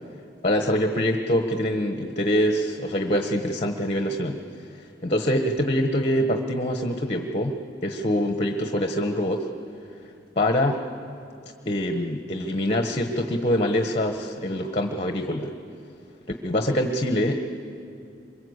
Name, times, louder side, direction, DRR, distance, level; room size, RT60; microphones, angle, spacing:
voice 1, 0.4-4.4 5.0-7.5 7.8-9.5 10.4-10.8 11.6-15.5 16.4-17.3, equal, 35° left, 5 dB, 1.2 m, -24 dB
25.0 x 22.5 x 8.1 m, 2.5 s
head